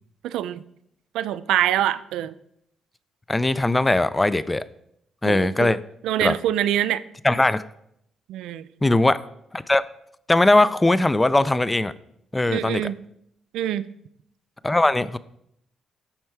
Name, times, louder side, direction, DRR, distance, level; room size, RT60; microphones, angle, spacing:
voice 1, 0.2-0.6 1.1-2.3 5.3-5.7 6.0-7.0 8.3-8.6 12.5-12.9 13.5-13.9, right 12 dB, 85° right, 0.4 m, -24 dB
voice 2, 3.3-4.6 5.2-5.8 6.2-6.3 7.2-7.6 8.8-9.2 9.5-9.8 10.3-11.9 12.3-12.9 14.6-15.2, left 2 dB, 15° left, 0.4 m, -20 dB
13.0 x 4.4 x 4.7 m
cardioid pair, 90°, 0 cm